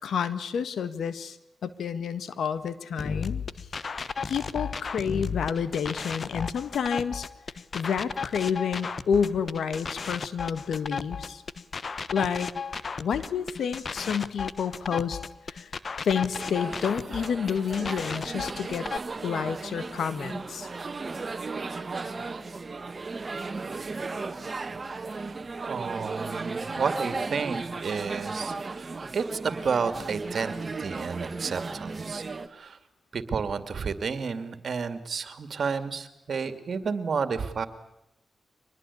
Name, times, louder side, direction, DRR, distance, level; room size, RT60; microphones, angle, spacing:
voice 1, 0.0-3.4 3.9-7.3 7.7-11.4 12.1-12.5 13.0-15.2 15.5-15.7 16.0-18.9 19.2-20.7, left 7 dB, 85° left, 13 dB, 1.7 m, -29 dB
sound 1, 3.0-19.0, left 5 dB, 55° left, 1.2 m, -34 dB
sound 2, 16.3-32.5, right 3 dB, 45° right, 1.9 m, -35 dB
voice 2, 25.6-32.2 32.5-32.8 33.1-37.7, right 5 dB, 65° right, 11 dB, 2.5 m, -31 dB
25.0 x 20.5 x 8.6 m, 0.83 s
cardioid pair, 55°, 0 cm